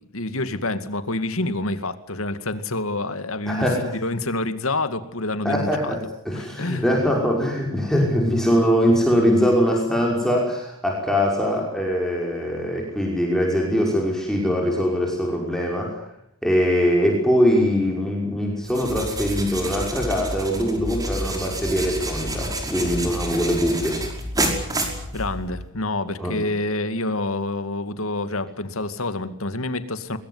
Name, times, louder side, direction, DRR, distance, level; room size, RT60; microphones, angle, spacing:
voice 1, 0.1-6.0 6.3-6.9 24.8-30.2, left 2 dB, 75° left, 11 dB, 2.3 m, -27 dB
voice 2, 3.5-3.9 5.4-6.0 6.3-16.0 16.4-24.0 26.2-26.3, equal, ahead, -1 dB, 5.7 m, -22 dB
sound 1, 18.6-25.7, right 1 dB, 15° right, 5.1 m, -29 dB
22.5 x 22.0 x 9.7 m, 0.73 s
head